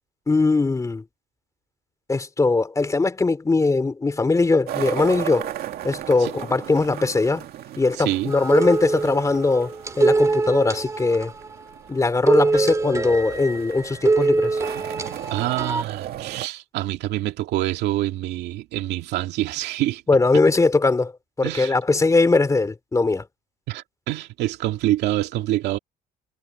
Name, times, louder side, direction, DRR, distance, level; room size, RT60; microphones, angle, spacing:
voice 1, 0.3-1.0 2.1-5.5 5.8-7.4 7.8-9.7 10.0-11.3 11.9-14.6 20.1-21.1 21.4-23.2, left 3 dB, 20° left, 2.9 m, -20 dB
sound 1, 4.7-16.5, right 12 dB, 70° right, 2.4 m, -36 dB
voice 2, 7.9-8.3 15.3-20.0 21.4-22.0 23.7-25.8, right 15 dB, 85° right, 2.4 m, -26 dB
sound 2, 8.3-11.5 12.3-15.8, right 3 dB, 20° right, 2.3 m, -23 dB
cardioid pair, 110°, 17 cm